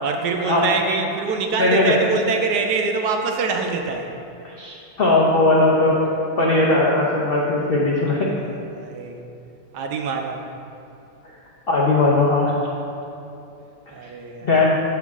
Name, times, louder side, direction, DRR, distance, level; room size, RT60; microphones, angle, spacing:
voice 1, 0.0-4.1 8.3-9.2 9.7-10.4 13.9-14.5, right 4 dB, 70° right, 3 dB, 1.0 m, -24 dB
voice 2, 1.6-2.0 4.6-5.9 6.4-8.3 11.7-12.5 14.4-14.7, left 2 dB, 90° left, -4 dB, 0.5 m, -18 dB
6.9 x 5.9 x 3.5 m, 2.7 s
omnidirectional pair, 2.0 m